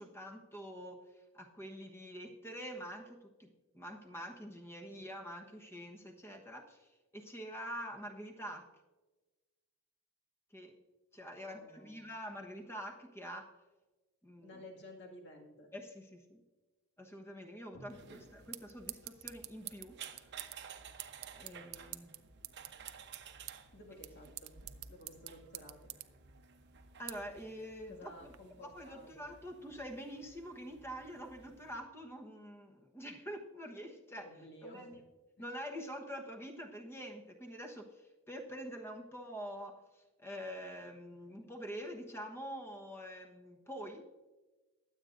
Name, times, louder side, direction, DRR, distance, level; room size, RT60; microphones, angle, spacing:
voice 1, 0.0-8.6 10.5-10.7 11.1-13.5 14.2-14.6 15.7-16.4 17.0-20.4 21.3-22.2 27.0-34.3 34.6-35.0 35.4-44.1, equal, 10° left, 3 dB, 1.2 m, -46 dB
voice 2, 11.4-12.1 14.4-15.7 17.7-18.2 23.7-24.5 24.9-25.9 27.9-29.2 34.2-35.0 35.4-35.5, left 1 dB, 55° left, 1 dB, 2.1 m, -53 dB
sound 1, 17.9-31.8, right 6 dB, 55° right, 0.9 m, -55 dB
sound 2, 17.9-28.4, right 16 dB, 75° right, 0.6 m, -50 dB
22.0 x 8.2 x 2.6 m, 1.2 s
head